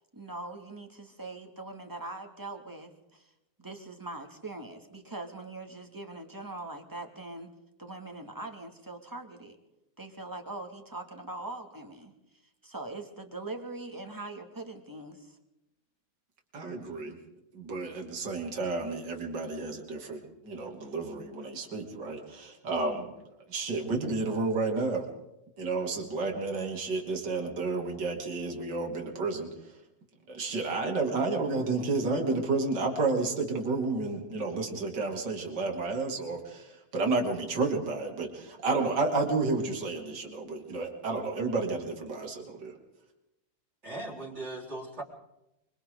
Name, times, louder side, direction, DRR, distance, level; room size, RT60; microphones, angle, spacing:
voice 1, 0.1-3.3 3.6-7.5 7.8-9.6 10.0-12.1 12.6-15.4, right 2 dB, 10° right, 3 dB, 2.4 m, -42 dB
voice 2, 16.5-17.2 17.5-23.1 23.5-25.1 25.6-29.5 30.3-42.8, right 3 dB, 50° right, 1 dB, 3.6 m, -31 dB
voice 3, 43.8-45.0, right 2 dB, 30° right, -2 dB, 4.9 m, -38 dB
26.0 x 25.5 x 4.0 m, 0.90 s
omnidirectional pair, 2.4 m